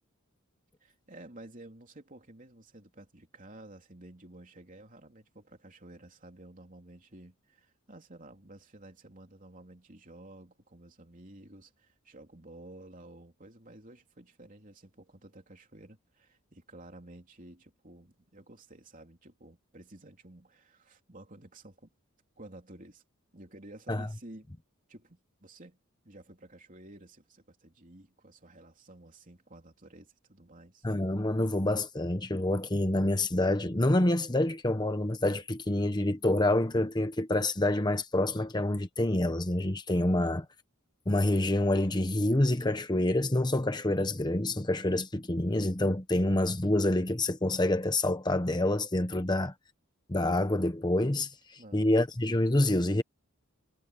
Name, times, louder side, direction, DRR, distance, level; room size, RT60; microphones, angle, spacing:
voice 1, 0.8-21.9 22.4-23.0 23.3-24.5 24.9-25.8 26.0-30.8 51.6-51.9, right 1 dB, 40° right, 3.3 m, -52 dB
voice 2, 30.8-40.5 41.1-49.5 50.1-53.0, left 1 dB, 20° left, 1.0 m, -27 dB
head